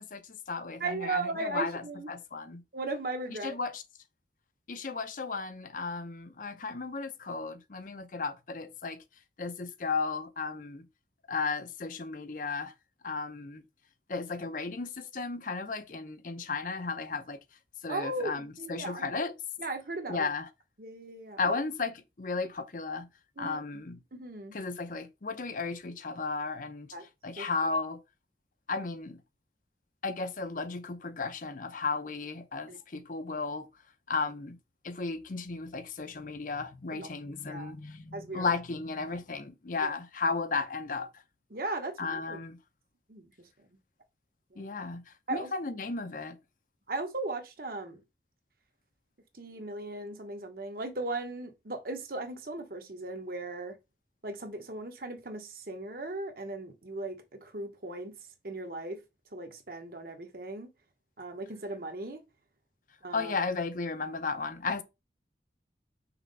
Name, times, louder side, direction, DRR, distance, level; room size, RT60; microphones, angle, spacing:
voice 1, 0.0-2.6 3.3-3.8 4.7-9.0 9.4-10.9 11.3-12.7 13.0-13.6 14.1-17.4 17.8-19.3 20.1-20.5 21.4-23.1 23.4-24.0 24.5-26.9 27.2-28.0 28.7-29.2 30.0-33.7 34.1-34.6 34.8-41.1 42.0-42.6 44.6-46.4 63.1-64.8, left 4 dB, 50° left, 0.7 m, -34 dB
voice 2, 0.8-2.1 2.7-3.6 17.9-19.2 19.6-20.3 20.8-21.6 23.4-23.6 24.1-24.6 26.9-27.0 27.4-27.5 32.7-32.8 36.9-37.1 37.5-37.7 38.1-38.5 39.8-39.9 41.5-42.4 43.1-43.3 44.5-44.7 45.3-45.5 46.9-48.0 49.4-53.8 54.2-58.2 58.4-59.0 59.3-60.7 61.2-62.2 63.0-63.3, right 2 dB, 55° right, 1.1 m, -37 dB
5.8 x 3.1 x 5.3 m
head